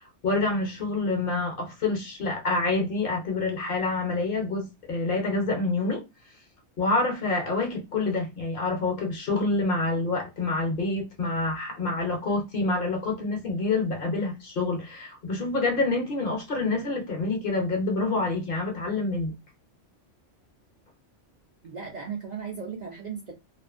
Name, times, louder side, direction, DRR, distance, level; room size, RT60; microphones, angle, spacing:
voice 1, 0.2-6.0 6.8-19.3, left 3 dB, 55° left, 0.7 m, -27 dB
voice 2, 21.6-23.3, right 6 dB, 50° right, 0.5 m, -36 dB
2.5 x 2.3 x 2.4 m
omnidirectional pair, 1.2 m